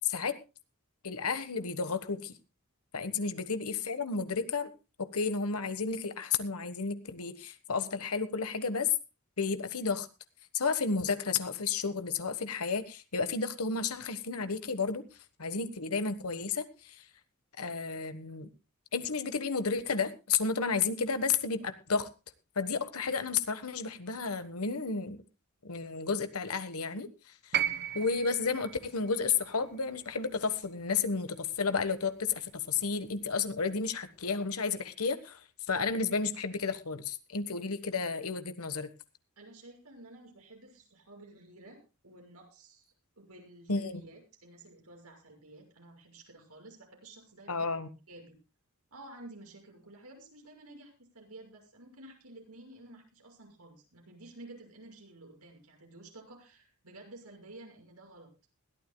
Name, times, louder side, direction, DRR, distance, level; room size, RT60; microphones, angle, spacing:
voice 1, 0.0-0.4 1.0-2.3 2.9-4.7 5.0-8.9 9.4-10.1 10.5-15.0 15.4-17.0 17.6-18.5 18.9-22.1 22.5-25.2 25.6-27.1 27.4-27.6 27.9-35.4 35.7-38.9 43.7-44.0 47.5-47.9, left 5 dB, 80° left, 11 dB, 1.3 m, -32 dB
sound 1, 27.5-31.7 32.9-33.0, right 9 dB, 50° right, 0.9 m, -37 dB
voice 2, 39.4-47.7 48.1-48.4 48.9-58.3, right 2 dB, 90° right, 3 dB, 6.3 m, -52 dB
21.5 x 14.0 x 2.3 m, 0.29 s
head